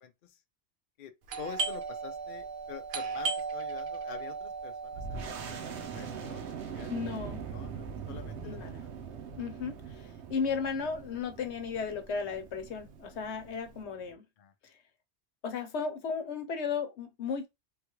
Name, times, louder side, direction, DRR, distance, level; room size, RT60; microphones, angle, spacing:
Doorbell, 1.2-10.6 10.9-11.0 11.6-12.0 12.3-13.7, right 4 dB, 55° right, 0.8 m, -38 dB
voice 1, 1.4-6.9 7.5-8.9 14.4-14.5, left 9 dB, 60° left, 0.6 m, -47 dB
sound 1, 4.9-14.1, right 6 dB, 80° right, 1.0 m, -42 dB
voice 2, 6.9-7.4 8.0-8.1 8.4-8.8 9.4-14.2 15.4-17.5, left 5 dB, 80° left, 1.0 m, -35 dB
3.5 x 2.3 x 3.0 m
omnidirectional pair, 1.1 m